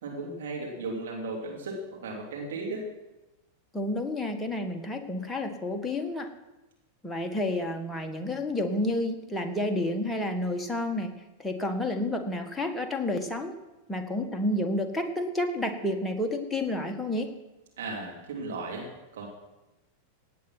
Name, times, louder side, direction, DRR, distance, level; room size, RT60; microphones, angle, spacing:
voice 1, 0.0-2.9 17.8-18.9 19.1-19.3, right 3 dB, 60° right, -1 dB, 3.1 m, -35 dB
voice 2, 3.7-6.3 7.0-11.1 11.4-13.6 13.9-17.3, left 1 dB, 5° left, 3 dB, 1.8 m, -30 dB
17.0 x 9.2 x 6.0 m, 1.0 s
figure-of-eight pair, 90°, 0 cm